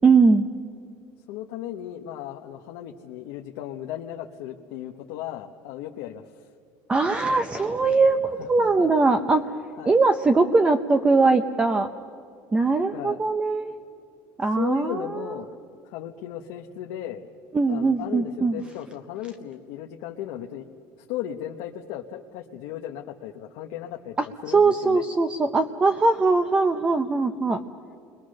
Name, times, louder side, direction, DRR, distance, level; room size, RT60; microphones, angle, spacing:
voice 1, 0.0-0.4 6.9-9.5 9.9-11.9 12.5-13.7 14.4-15.3 17.5-18.6 24.2-27.6, right 3 dB, 15° right, 8 dB, 0.6 m, -21 dB
voice 2, 1.3-6.5 8.4-8.9 9.8-10.0 12.9-13.2 14.6-15.5 15.8-17.2 17.7-20.7 21.0-25.0, left 11 dB, 80° left, 1 dB, 1.2 m, -36 dB
29.5 x 22.0 x 6.5 m, 2.3 s
cardioid pair, 175°, 8 cm